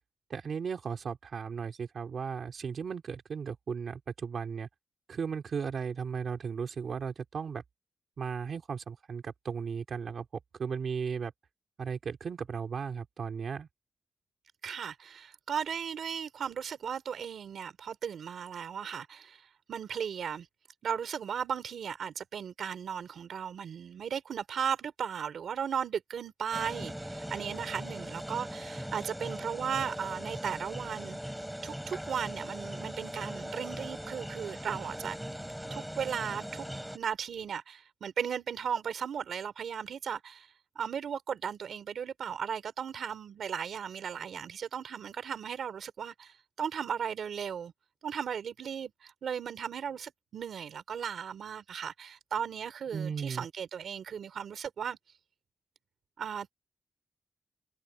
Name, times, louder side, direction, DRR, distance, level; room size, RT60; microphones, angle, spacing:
voice 1, 0.3-4.7 5.1-7.6 8.2-10.3 10.6-11.3 11.8-13.7 52.9-53.5, right 6 dB, 50° right, 3.8 m, -36 dB
voice 2, 14.6-20.5 20.8-31.2 31.6-35.2 35.7-36.7 36.9-40.5 40.8-47.7 48.0-55.0 56.2-56.5, right 7 dB, 65° right, 3.5 m, -36 dB
sound 1, 26.5-37.0, equal, 5° right, 7.5 m, -40 dB
wide cardioid pair, 170°, 0 cm